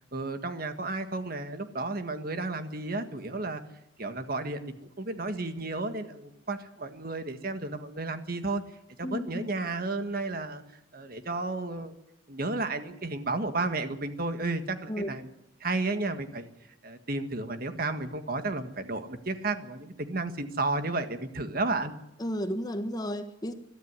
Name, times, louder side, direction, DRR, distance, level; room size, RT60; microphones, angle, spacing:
voice 1, 0.1-3.6 4.0-8.6 9.0-10.6 10.9-11.9 12.3-15.3 15.6-16.5 16.8-22.0, right 2 dB, 50° right, 8 dB, 1.7 m, -32 dB
voice 2, 9.0-9.5 14.9-15.1 22.2-23.5, equal, 20° left, 8 dB, 1.4 m, -33 dB
22.5 x 13.5 x 9.8 m, 0.86 s
head